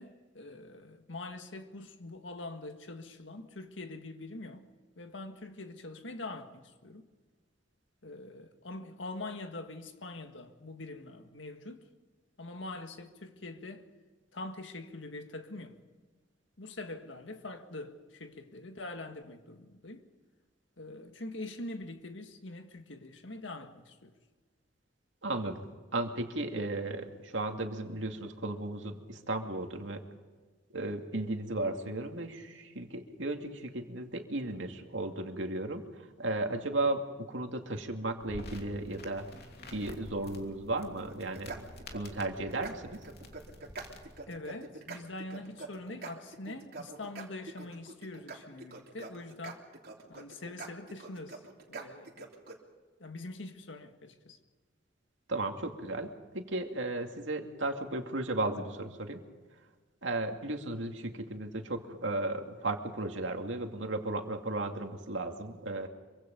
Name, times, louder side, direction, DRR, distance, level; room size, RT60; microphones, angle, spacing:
voice 1, 0.0-4.7 5.0-7.1 8.0-11.8 12.4-13.9 14.3-15.8 16.6-20.0 20.8-24.1 44.3-49.6 50.1-51.4 51.7-52.3 53.0-54.4, left 2 dB, 80° left, 1.9 m, -44 dB
voice 2, 25.2-25.6 25.9-30.0 30.7-39.3 39.7-41.7 41.9-43.1 55.3-59.2 60.0-65.9, right 2 dB, 80° right, 2.4 m, -35 dB
sound 1, 37.6-46.6 47.0-47.1, equal, 25° right, 2.3 m, -58 dB
sound 2, 38.2-44.2, left 2 dB, 55° left, 2.9 m, -49 dB
sound 3, 41.1-52.6, right 3 dB, 55° right, 3.4 m, -45 dB
25.5 x 24.5 x 5.3 m
head